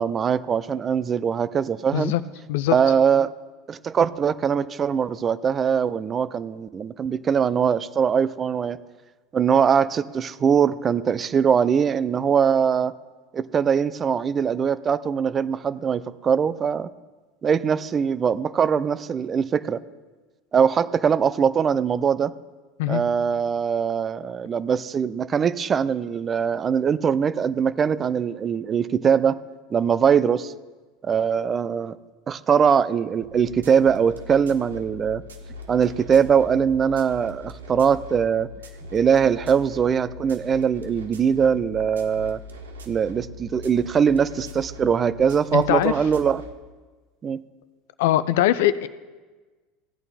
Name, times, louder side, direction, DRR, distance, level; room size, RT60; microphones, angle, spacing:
voice 1, 0.0-2.1 2.7-3.3 3.7-8.8 9.3-12.9 13.3-16.9 17.4-19.8 20.5-22.3 22.9-29.4 29.7-30.5 31.0-31.9 32.3-35.2 35.7-38.5 38.9-42.4 42.9-46.4 47.2-47.4, right 7 dB, 30° right, 16 dB, 0.5 m, -22 dB
sound 1, 33.2-46.5, left 1 dB, 85° right, 1.0 m, -41 dB
voice 2, 45.5-45.9 48.0-48.9, left 14 dB, 70° left, 15 dB, 0.5 m, -21 dB
15.5 x 8.8 x 4.3 m, 1.3 s
hypercardioid pair, 80°, 0 cm